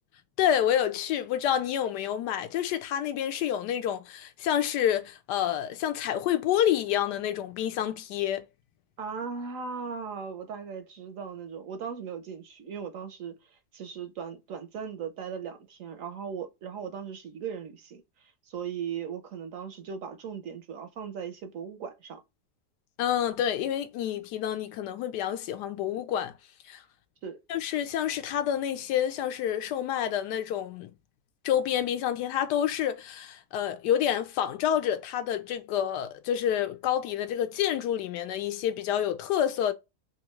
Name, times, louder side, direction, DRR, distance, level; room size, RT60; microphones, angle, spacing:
voice 1, 0.4-8.5 23.0-26.4 26.7-26.8 27.5-30.9 31.4-39.7, left 10 dB, 90° left, 1.2 m, -28 dB
voice 2, 9.0-22.2 27.2-27.4, right 6 dB, 70° right, 0.8 m, -38 dB
3.5 x 2.4 x 3.0 m
omnidirectional pair, 1.8 m